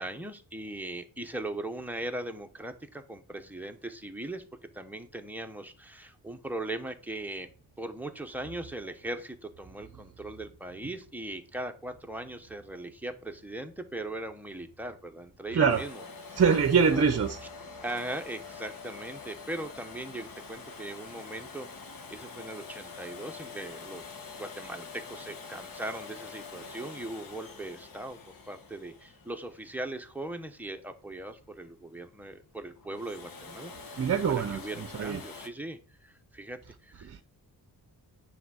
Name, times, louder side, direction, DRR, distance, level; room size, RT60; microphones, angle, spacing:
voice 1, 0.0-4.4 4.7-7.5 7.8-16.4 16.8-17.0 17.8-28.2 28.5-37.2, right 1 dB, 5° right, 0.8 m, -39 dB
Domestic sounds home sounds, 15.7-30.4 32.8-35.5, left 4 dB, 60° left, 1.3 m, -46 dB
voice 2, 16.4-17.4 34.0-35.2 37.0-37.2, right 6 dB, 40° right, 0.6 m, -24 dB
9.8 x 3.5 x 6.2 m
wide cardioid pair, 160°, 39 cm